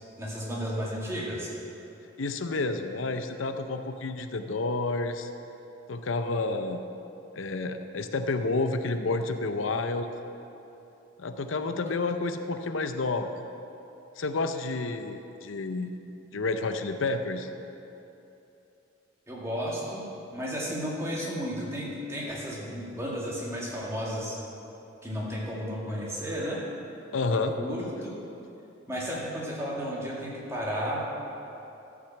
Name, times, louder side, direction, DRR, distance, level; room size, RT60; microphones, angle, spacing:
voice 1, 0.2-1.5 19.3-20.0 20.3-24.4 25.0-26.6 27.3-28.1 28.9-31.1, equal, 15° right, -5 dB, 2.1 m, -33 dB
voice 2, 2.2-5.3 5.9-6.8 7.4-10.1 11.2-13.3 14.2-15.9 16.3-17.5 27.1-27.5, left 3 dB, 90° left, 8 dB, 0.7 m, -30 dB
13.5 x 6.1 x 7.4 m, 2.9 s
head